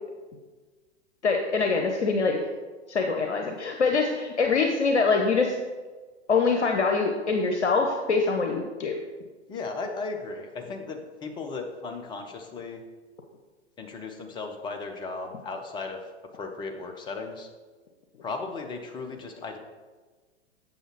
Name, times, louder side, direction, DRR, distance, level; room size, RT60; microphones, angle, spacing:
voice 1, 1.2-2.4 2.9-5.5 6.3-9.0, left 4 dB, 75° left, 3 dB, 0.8 m, -24 dB
voice 2, 9.5-12.8 13.8-16.0 16.3-17.5 18.2-19.6, left 3 dB, 15° left, 4 dB, 0.6 m, -36 dB
7.9 x 6.3 x 3.0 m, 1.4 s
figure-of-eight pair, 105°, 35 cm